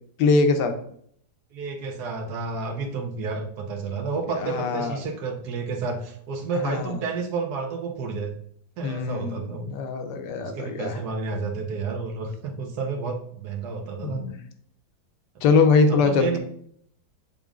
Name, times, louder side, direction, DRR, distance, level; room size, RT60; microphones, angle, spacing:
voice 1, 0.2-0.8 4.4-5.0 6.5-7.0 8.8-11.0 14.0-14.4 15.4-16.4, left 4 dB, 85° left, 6 dB, 1.3 m, -22 dB
voice 2, 1.5-8.3 8.8-9.7 10.4-14.2 15.9-16.4, right 4 dB, 70° right, 2 dB, 1.5 m, -30 dB
7.2 x 3.8 x 3.7 m, 0.64 s
omnidirectional pair, 1.8 m